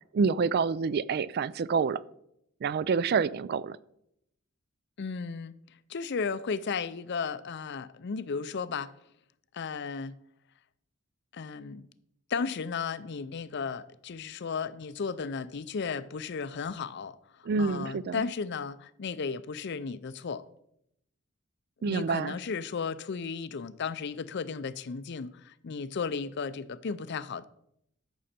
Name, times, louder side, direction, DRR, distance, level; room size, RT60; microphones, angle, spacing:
voice 1, 0.1-2.0 2.6-3.8 17.4-18.2 21.8-22.4, right 5 dB, 50° right, 0.3 m, -27 dB
voice 2, 5.0-5.5 5.9-8.9 9.5-10.2 11.3-11.9 12.3-17.2 17.6-20.4 21.8-27.5, left 5 dB, 55° left, 0.5 m, -34 dB
14.0 x 6.3 x 4.3 m
head